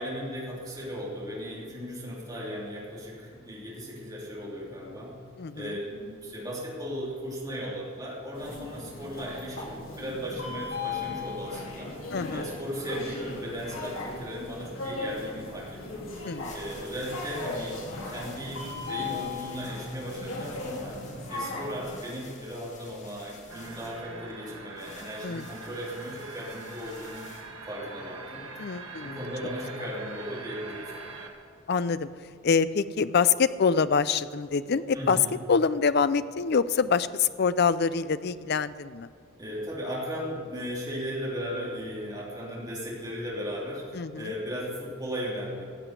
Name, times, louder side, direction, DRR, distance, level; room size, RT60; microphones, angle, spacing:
voice 1, 0.0-5.2 5.5-17.8 18.0-21.0 21.3-27.3 27.7-28.4 29.0-31.2 34.9-35.4 39.4-45.6, equal, 20° right, -6 dB, 3.1 m, -36 dB
voice 2, 5.4-5.8 12.1-12.5 16.2-16.5 25.2-25.5 28.6-29.2 31.7-32.1 32.4-35.2 35.5-39.1 43.9-44.3, left 5 dB, 50° left, 15 dB, 0.4 m, -25 dB
sound 1, 8.3-21.9, left 3 dB, 80° left, 3.2 m, -37 dB
sound 2, 16.4-27.4, left 4 dB, 35° left, 1.8 m, -51 dB
sound 3, 23.5-31.3, right 3 dB, 75° right, 1.7 m, -43 dB
15.0 x 7.7 x 8.1 m, 2.2 s
head